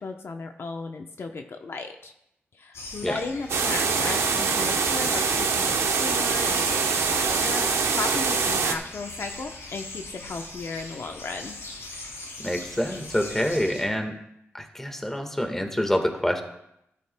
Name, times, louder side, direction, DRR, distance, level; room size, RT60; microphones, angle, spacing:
voice 1, 0.0-2.1 2.5-11.6, left 4 dB, 60° left, 4 dB, 0.7 m, -35 dB
sound 1, 2.7-13.8, left 2 dB, 85° left, 3.4 m, -40 dB
sound 2, 3.5-8.7, right 5 dB, 80° right, 0.9 m, -24 dB
voice 2, 12.4-14.1 14.5-16.4, equal, 10° left, 4 dB, 1.5 m, -26 dB
13.5 x 12.0 x 2.2 m, 0.81 s
wide cardioid pair, 90°, 5 cm